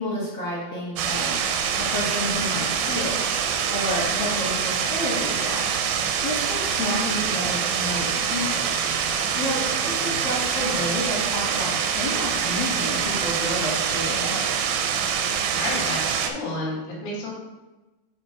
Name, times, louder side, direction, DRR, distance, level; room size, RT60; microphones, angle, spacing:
voice 1, 0.0-3.2 3.7-8.7 9.3-14.4, left 1 dB, 85° left, -7 dB, 1.0 m, -30 dB
sound 1, 1.0-16.3, right 7 dB, 80° right, 2.0 m, -25 dB
voice 2, 9.7-10.3 15.6-17.3, left 2 dB, 70° left, -5 dB, 3.6 m, -32 dB
8.9 x 3.1 x 4.7 m, 1.1 s
omnidirectional pair, 4.4 m